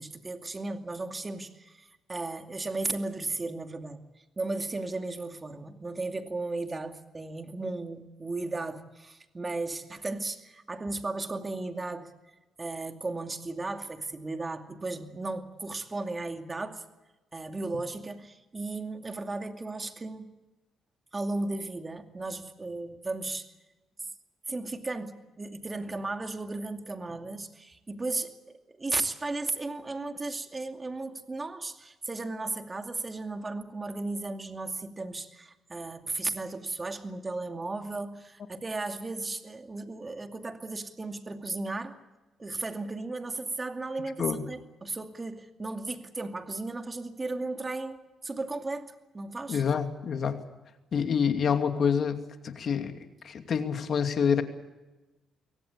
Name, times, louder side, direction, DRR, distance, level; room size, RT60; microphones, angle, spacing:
voice 1, 0.0-4.0 4.4-12.1 12.6-16.8 17.3-20.3 21.1-23.5 24.5-42.0 42.4-49.6, right 2 dB, 25° right, 6 dB, 2.4 m, -35 dB
voice 2, 49.5-50.4 50.9-53.0 53.2-54.4, left 7 dB, 55° left, 7 dB, 2.6 m, -27 dB
23.5 x 18.0 x 8.4 m, 1.1 s
cardioid pair, 90°, 0 cm